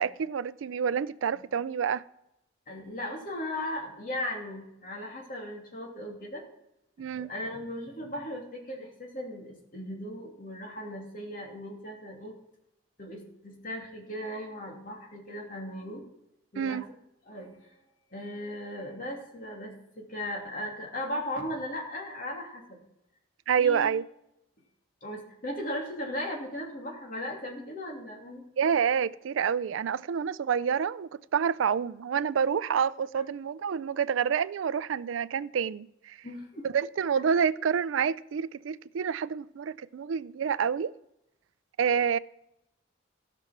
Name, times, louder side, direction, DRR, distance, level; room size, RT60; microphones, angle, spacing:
voice 1, 0.0-2.0 7.0-7.3 16.6-16.9 23.5-24.0 28.6-36.2 36.6-40.9 41.8-42.2, right 7 dB, 85° right, 0.4 m, -28 dB
voice 2, 2.7-6.4 7.0-12.3 13.0-16.0 16.5-16.8 17.2-17.7 18.1-22.8 23.6-23.9 25.0-28.4 36.2-36.7, left 1 dB, 45° left, 2.8 m, -37 dB
15.0 x 6.1 x 5.9 m
head